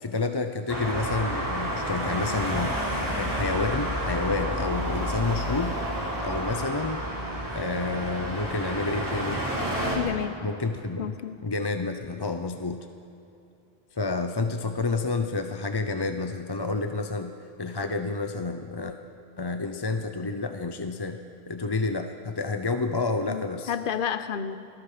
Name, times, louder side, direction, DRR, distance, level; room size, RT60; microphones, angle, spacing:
voice 1, 0.0-5.8 6.2-7.0 7.4-9.4 10.4-11.1 11.4-12.9 13.9-17.3 17.6-18.9 19.4-21.2 21.5-23.7, left 3 dB, 25° left, 7 dB, 0.8 m, -29 dB
Traffic noise roadway noise, 0.7-10.0, equal, 20° right, 4.4 m, -30 dB
voice 2, 9.9-10.4 11.0-11.4 23.3-24.6, left 8 dB, 60° left, 12 dB, 1.0 m, -30 dB
28.0 x 19.5 x 5.1 m, 2.8 s
omnidirectional pair, 1.0 m